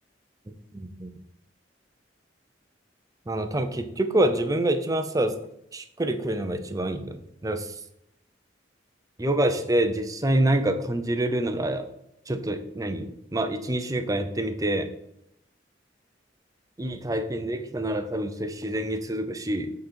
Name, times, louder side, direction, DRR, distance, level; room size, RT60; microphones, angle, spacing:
voice 1, 0.7-1.1 3.3-5.4 5.7-7.7 9.2-11.9 12.3-14.9 16.8-19.7, right 1 dB, 20° right, 8 dB, 0.6 m, -26 dB
8.3 x 3.9 x 4.4 m, 0.76 s
head